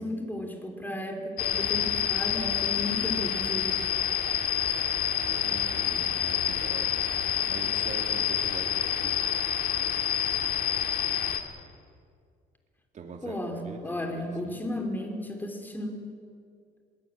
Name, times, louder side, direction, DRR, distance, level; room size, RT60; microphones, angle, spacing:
voice 1, 0.0-3.8 13.2-16.0, left 1 dB, 10° left, 4 dB, 3.4 m, -34 dB
sound 1, 1.4-11.4, left 9 dB, 60° left, 2.2 m, -28 dB
voice 2, 5.2-6.9 7.4-9.2 12.9-14.6, right 4 dB, 45° right, 2 dB, 2.7 m, -43 dB
20.5 x 17.0 x 8.9 m, 2.2 s
cardioid pair, 110°, 17 cm